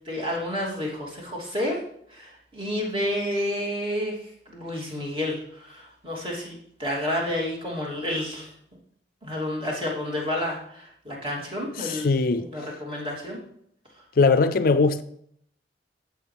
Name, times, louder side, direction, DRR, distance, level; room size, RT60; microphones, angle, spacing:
voice 1, 0.0-1.8 2.1-8.5 9.2-13.4, left 1 dB, 30° right, 3.0 m, -30 dB
voice 2, 11.8-12.5 14.2-15.0, left 4 dB, 55° left, 0.4 m, -20 dB
14.5 x 7.2 x 3.5 m
head